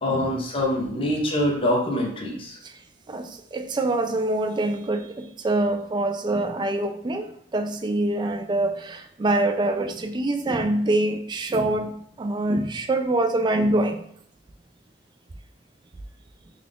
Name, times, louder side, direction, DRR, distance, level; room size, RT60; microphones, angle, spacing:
voice 1, 0.0-2.5, left 1 dB, 30° left, -2 dB, 0.7 m, -24 dB
voice 2, 3.5-11.9 12.2-14.0, right 2 dB, 25° right, 7 dB, 0.3 m, -25 dB
3.6 x 2.4 x 3.5 m, 0.66 s
head